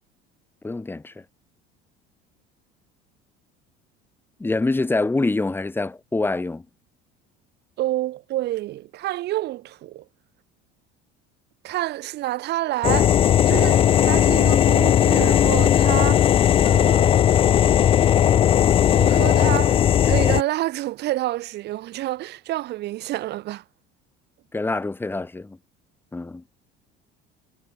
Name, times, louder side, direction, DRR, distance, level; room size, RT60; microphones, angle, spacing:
voice 1, 0.6-1.2 4.4-6.6 24.5-25.6 26.1-26.4, left 2 dB, 10° left, 3.2 m, -25 dB
voice 2, 7.8-10.1 11.6-13.2 13.5-16.3 16.6-17.3 19.0-23.6, right 15 dB, 55° right, 2.3 m, -28 dB
sound 1, 12.8-20.4, left 10 dB, 25° left, 0.3 m, -17 dB
cardioid pair, 140°, 21 cm